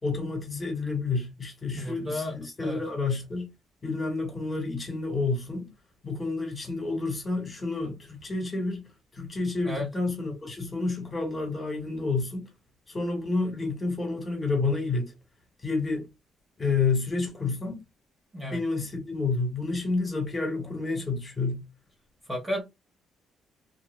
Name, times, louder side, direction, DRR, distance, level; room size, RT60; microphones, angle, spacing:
voice 1, 0.0-3.5 3.8-5.7 6.0-8.8 9.1-12.5 12.9-15.1 15.6-16.1 16.6-17.8 18.5-21.6, left 3 dB, 30° left, 1.7 m, -29 dB
voice 2, 1.7-2.4 2.6-2.8 9.6-9.9 18.3-18.6 22.3-22.6, left 1 dB, 15° right, 1.3 m, -32 dB
2.8 x 2.7 x 2.2 m
cardioid pair, 90°, 0 cm